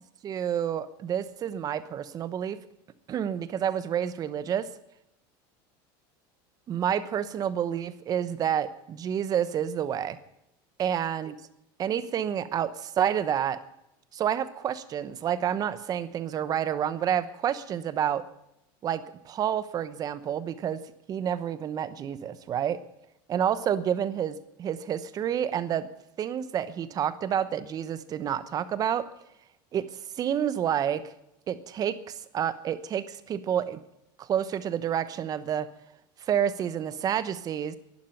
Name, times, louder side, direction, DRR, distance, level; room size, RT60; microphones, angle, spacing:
voice 1, 0.2-2.6 3.1-4.7 6.7-10.2 10.8-11.3 11.8-13.6 14.1-18.2 18.8-20.8 21.1-22.8 23.3-25.9 26.2-29.1 29.7-29.9 30.2-31.0 31.5-33.8 34.2-35.7 36.3-37.8, right 9 dB, 35° right, 14 dB, 1.0 m, -29 dB
11.5 x 11.5 x 9.0 m, 0.83 s
supercardioid pair, 135°, 11 cm